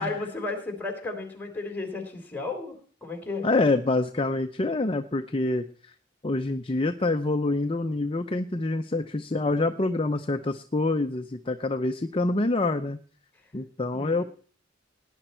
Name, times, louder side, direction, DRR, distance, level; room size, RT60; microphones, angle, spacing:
voice 1, 0.0-2.7 3.0-3.5 13.9-14.2, left 3 dB, 10° left, 3 dB, 3.7 m, -33 dB
voice 2, 3.4-5.9 6.2-13.0 13.5-14.2, left 2 dB, 30° left, 7 dB, 0.6 m, -26 dB
18.0 x 10.0 x 4.4 m, 0.43 s
head